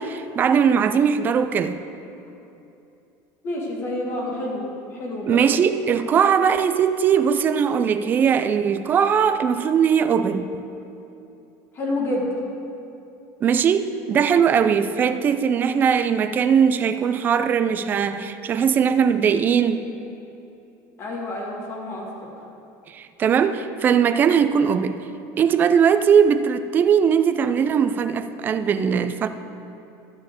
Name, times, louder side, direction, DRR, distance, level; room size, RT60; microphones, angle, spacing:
voice 1, 0.0-1.8 5.3-10.6 13.4-19.9 22.9-25.1 25.4-29.3, right 7 dB, 25° right, 10 dB, 0.4 m, -20 dB
voice 2, 3.4-4.6 4.9-5.4 6.1-6.2 11.7-12.3 21.0-22.1, left 1 dB, 30° left, -2 dB, 1.9 m, -28 dB
12.5 x 4.4 x 8.2 m, 2.8 s
cardioid pair, 170°, 8 cm